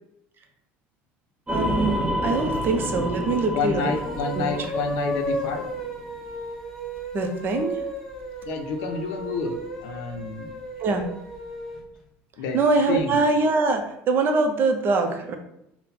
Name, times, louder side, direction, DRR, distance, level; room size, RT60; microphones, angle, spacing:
sound 1, 1.5-5.9, equal, 10° right, 1.1 m, -29 dB
voice 1, 1.5-3.9 4.3-4.7 7.1-7.9 10.8-11.0 12.5-15.4, right 3 dB, 40° right, 5 dB, 0.6 m, -23 dB
voice 2, 3.5-5.7 8.5-10.5 12.4-12.6 12.9-13.2, left 4 dB, 75° left, 5 dB, 0.6 m, -29 dB
sound 2, 3.7-11.9, equal, 10° left, 0.8 m, -34 dB
3.8 x 2.1 x 4.1 m, 0.78 s
cardioid pair, 125°, 6 cm